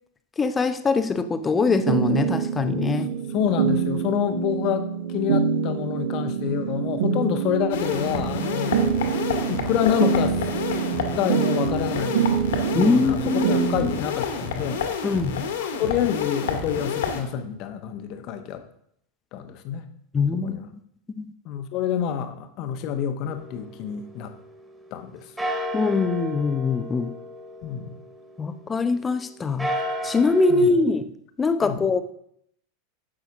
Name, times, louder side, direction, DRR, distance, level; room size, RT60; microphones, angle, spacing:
voice 1, 0.4-3.1 12.7-13.9 15.0-15.5 20.1-20.6 21.2-21.3 25.7-27.1 28.4-29.7 30.0-31.0 31.4-32.0, left 4 dB, 15° left, 11 dB, 0.8 m, -23 dB
sound 1, 1.7-14.0, right 7 dB, 60° right, 0.9 m, -26 dB
voice 2, 3.3-8.9 9.5-10.5 11.2-12.3 12.7-14.9 15.6-18.6 19.3-19.8 20.4-20.7 21.4-24.3 24.9-25.3 27.6-28.0 30.5-30.7 31.6-31.8, left 9 dB, 40° left, 8 dB, 1.1 m, -27 dB
sound 2, 7.7-17.2, left 5 dB, 60° left, 1.6 m, -29 dB
sound 3, 23.2-25.0 25.4-28.9 29.4-30.6, equal, 10° right, 2.4 m, -33 dB
11.5 x 7.8 x 3.6 m, 0.69 s
figure-of-eight pair, 85°, 0 cm